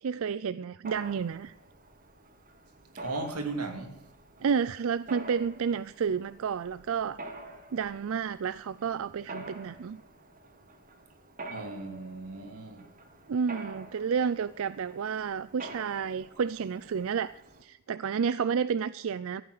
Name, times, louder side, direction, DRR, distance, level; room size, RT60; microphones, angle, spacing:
voice 1, 0.0-1.5 4.4-7.2 7.7-10.0 13.3-17.3 17.6-19.4, right 6 dB, 65° right, 0.4 m, -30 dB
Mechanisms, 0.8-17.6, right 2 dB, 40° right, 2.0 m, -48 dB
voice 2, 3.0-4.0 11.5-12.9, right 3 dB, 90° right, 2.7 m, -36 dB
15.0 x 8.8 x 6.5 m
head